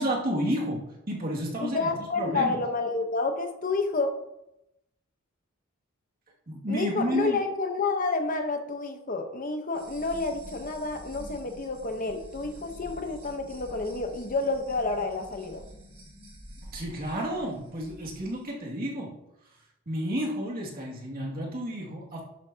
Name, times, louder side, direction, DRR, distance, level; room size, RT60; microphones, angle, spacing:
voice 1, 0.0-2.6 6.5-7.4 16.6-19.2 19.9-22.2, equal, 45° right, -3 dB, 2.3 m, -31 dB
voice 2, 1.6-4.2 6.7-15.6, left 3 dB, 40° left, 5 dB, 1.0 m, -29 dB
sound 1, 9.7-18.3, equal, 30° right, 2.2 m, -47 dB
12.0 x 7.3 x 2.8 m, 0.87 s
head